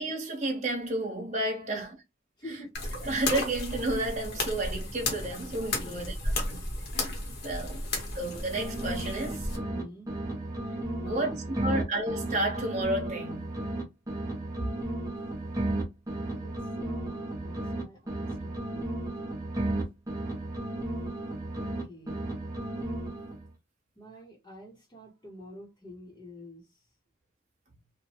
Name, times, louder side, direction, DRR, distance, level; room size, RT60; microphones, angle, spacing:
voice 1, 0.0-1.9 3.0-6.2 6.5-6.6 7.4-7.8 8.1-9.5 11.0-13.5, right 2 dB, 35° right, 1.0 m, -31 dB
voice 2, 2.4-2.7 5.8-6.2 7.6-8.2 9.7-10.2 11.0-11.8 14.6-14.7 16.3-19.4 21.6-22.2 24.0-26.9, equal, 20° left, 0.9 m, -46 dB
sound 1, 2.7-9.6, left 2 dB, 55° left, 1.0 m, -34 dB
sound 2, 8.2-9.8 10.1-13.8 14.1-17.8 18.1-21.8 22.1-23.5, right 1 dB, 20° right, 0.7 m, -34 dB
3.0 x 2.1 x 2.9 m
head